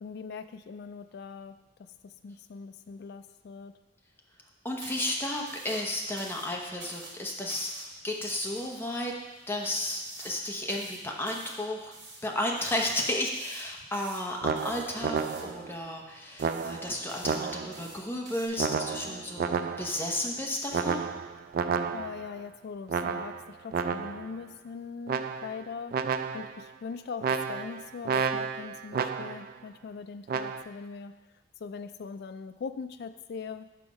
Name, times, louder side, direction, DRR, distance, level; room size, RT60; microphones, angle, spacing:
voice 1, 0.0-1.9 2.2-3.7 21.5-21.7 21.9-26.0 26.3-31.1 31.6-33.7, left 5 dB, 55° left, 10 dB, 0.3 m, -41 dB
voice 2, 4.6-7.7 8.0-9.1 9.5-11.9 12.2-21.1, left 1 dB, 10° left, 0 dB, 0.8 m, -33 dB
sound 1, 4.8-18.5, right 2 dB, 65° right, 1.9 m, -49 dB
sound 2, 14.4-15.7 16.4-17.9 18.6-20.1 20.7-22.3 22.9-24.3 25.1-25.7 25.9-26.6 27.2-29.5 30.3-30.6, right 6 dB, 50° right, 0.3 m, -31 dB
6.0 x 5.7 x 5.1 m, 1.1 s
head